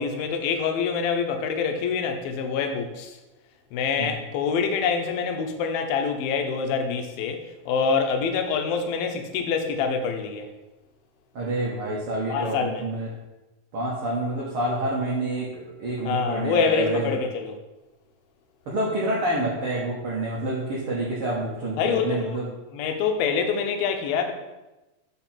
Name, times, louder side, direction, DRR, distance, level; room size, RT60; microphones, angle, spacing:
voice 1, 0.0-3.2 3.7-10.5 12.3-12.8 16.1-17.6 21.8-22.4 22.7-24.3, left 5 dB, 85° left, 2.6 m, -26 dB
voice 2, 11.3-13.1 13.7-17.2 18.7-22.4, right 1 dB, 80° right, 1.2 m, -28 dB
5.8 x 5.8 x 4.3 m
omnidirectional pair, 4.1 m